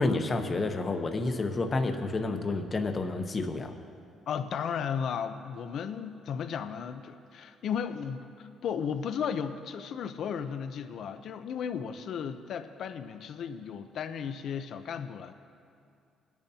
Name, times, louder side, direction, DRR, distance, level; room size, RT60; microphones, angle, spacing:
voice 1, 0.0-3.7, left 3 dB, 25° left, 5 dB, 0.8 m, -29 dB
voice 2, 4.3-15.3, left 7 dB, 50° left, 9 dB, 0.6 m, -35 dB
21.5 x 10.5 x 2.8 m, 2.4 s
cardioid pair, 165°, 0 cm